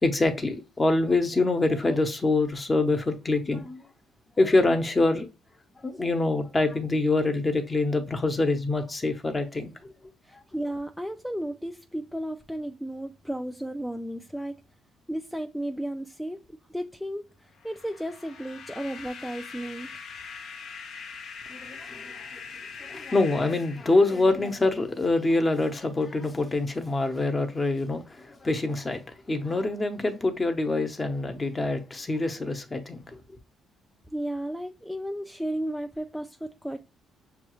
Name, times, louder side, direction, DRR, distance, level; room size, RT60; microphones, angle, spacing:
voice 1, 0.0-3.9 4.4-5.3 5.8-9.9 21.5-22.4 22.8-33.0, left 2 dB, 20° left, 0.8 m, -25 dB
voice 2, 10.2-14.6 15.1-20.1 34.1-36.8, right 1 dB, ahead, 0.3 m, -34 dB
sound 1, 17.5-24.6, left 5 dB, 65° left, 0.8 m, -43 dB
6.6 x 2.4 x 3.0 m
cardioid pair, 120°, 0 cm